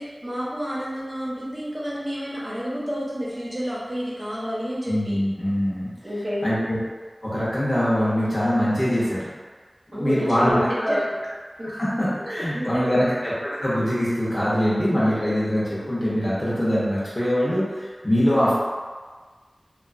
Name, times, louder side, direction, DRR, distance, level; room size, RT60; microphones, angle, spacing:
voice 1, 0.0-5.2 6.0-6.5 9.9-11.1 11.6-11.7 12.2-13.0, equal, 40° right, -8 dB, 0.9 m, -29 dB
voice 2, 4.9-5.9 6.4-6.8 7.2-9.2 9.9-11.0 11.6-18.5, equal, 30° left, -9 dB, 1.0 m, -23 dB
2.7 x 2.3 x 2.6 m, 1.4 s
wide cardioid pair, 40°, 0 cm